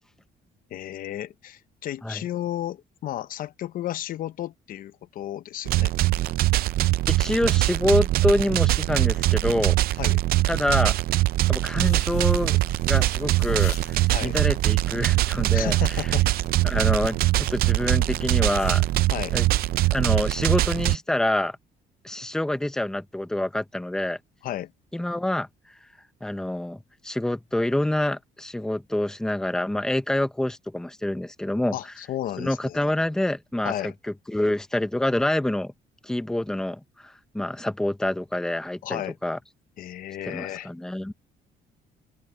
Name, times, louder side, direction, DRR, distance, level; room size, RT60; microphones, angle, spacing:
voice 1, 0.7-5.9 10.0-10.2 14.1-14.4 15.5-16.3 16.8-16.9 19.1-19.4 24.4-24.7 31.7-32.9 33.6-33.9 38.8-39.2 39.8-40.7, left 12 dB, 60° left, 0.8 m, -33 dB
sound 1, 5.7-21.0, right 17 dB, 65° right, 0.5 m, -22 dB
voice 2, 7.1-9.8 10.5-10.9 11.5-12.6 12.9-13.7 14.2-16.0 16.6-18.8 19.3-19.5 19.9-21.6 22.0-24.2 24.9-25.5 26.2-31.7 32.4-33.9 34.3-35.7 36.0-39.4 40.2-41.1, left 1 dB, 5° left, 0.8 m, -26 dB
sound 2, 11.8-20.0, left 13 dB, 75° left, 2.4 m, -48 dB
open air
cardioid pair, 160°, 17 cm